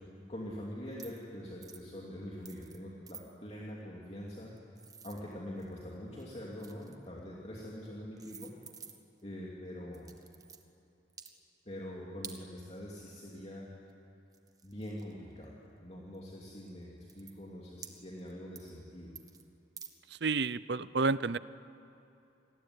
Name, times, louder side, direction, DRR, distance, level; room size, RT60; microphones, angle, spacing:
voice 1, 0.0-4.5 5.0-8.6 9.2-10.1 11.6-13.7 14.6-19.1, equal, 35° left, -4 dB, 2.9 m, -44 dB
sound 1, 0.9-1.2 1.6-1.9 2.4-2.8 3.1-3.2 4.3-5.8 6.1-7.1 7.8-7.9 8.2-9.2 9.9-10.6 11.1-11.3 12.2-12.4 13.9-14.0 14.3-15.4 16.1-16.3 16.7-16.8 17.0-17.3 17.8-18.3 18.6-18.8 19.2-19.4 19.8-19.9, right 6 dB, 20° right, 1.3 m, -50 dB
voice 2, 20.2-21.4, right 4 dB, 60° right, 17 dB, 0.6 m, -30 dB
28.5 x 20.5 x 9.9 m, 2.9 s
head